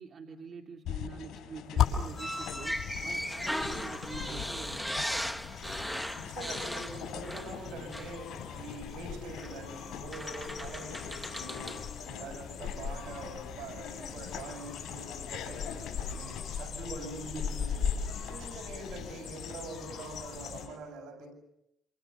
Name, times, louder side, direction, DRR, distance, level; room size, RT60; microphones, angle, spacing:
voice 1, 0.0-5.1 17.2-17.6, right 5 dB, 50° right, 3 dB, 2.6 m, -46 dB
sound 1, 0.9-20.8, left 9 dB, 80° left, 4.6 m, -45 dB
sound 2, 1.8-20.7, left 7 dB, 55° left, 5.6 m, -38 dB
sound 3, 2.2-7.6 7.9-8.2 9.4-9.5 10.1-11.9, equal, ahead, 1.4 m, -37 dB
voice 2, 6.1-21.3, right 3 dB, 85° right, 6 dB, 7.0 m, -44 dB
28.0 x 28.0 x 7.0 m, 0.83 s
cardioid pair, 90°, 0 cm